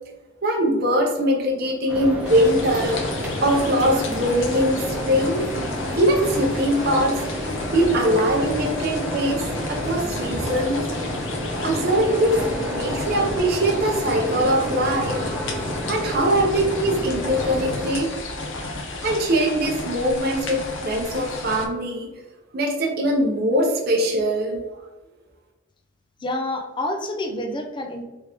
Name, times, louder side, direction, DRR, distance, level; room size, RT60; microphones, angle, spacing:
voice 1, 0.4-3.0 3.4-5.7 6.0-7.2 7.7-10.8 11.6-15.2 15.9-18.2 19.0-22.1 22.5-24.6, equal, 50° right, 0 dB, 0.7 m, -22 dB
sound 1, 1.9-17.9, equal, 5° right, 0.9 m, -30 dB
sound 2, 2.3-21.7, left 2 dB, 70° left, 0.7 m, -33 dB
voice 2, 26.2-28.0, left 1 dB, 25° left, 3 dB, 0.5 m, -28 dB
3.6 x 3.5 x 2.9 m, 1.1 s
head